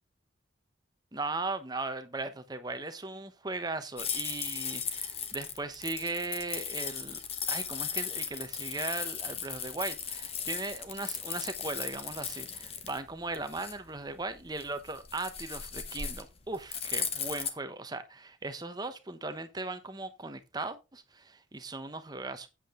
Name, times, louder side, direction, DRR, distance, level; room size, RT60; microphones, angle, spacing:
voice 1, 1.1-7.2 7.5-22.5, right 3 dB, 20° right, 0.9 m, -38 dB
sound 1, 4.0-17.5, left 7 dB, 30° left, 1.1 m, -37 dB
8.6 x 7.5 x 3.7 m
head